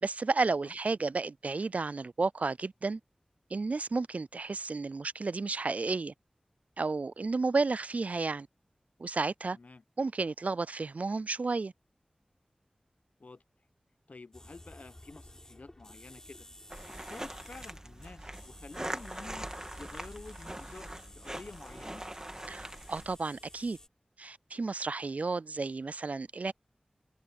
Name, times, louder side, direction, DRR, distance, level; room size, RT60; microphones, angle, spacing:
voice 1, 0.0-3.0 3.5-6.1 6.8-8.5 9.0-9.6 10.0-11.7 22.5-23.8 24.2-26.5, right 3 dB, 65° right, 0.3 m, -32 dB
voice 2, 9.5-9.8 13.2-13.4 14.1-16.5 16.9-19.5 19.8-22.0, left 3 dB, 70° left, 1.0 m, -50 dB
sound 1, 14.3-23.9, left 1 dB, 25° left, 6.1 m, -53 dB
sound 2, 16.7-23.2, right 1 dB, 25° right, 1.9 m, -42 dB
wide cardioid pair, 40°, 3 cm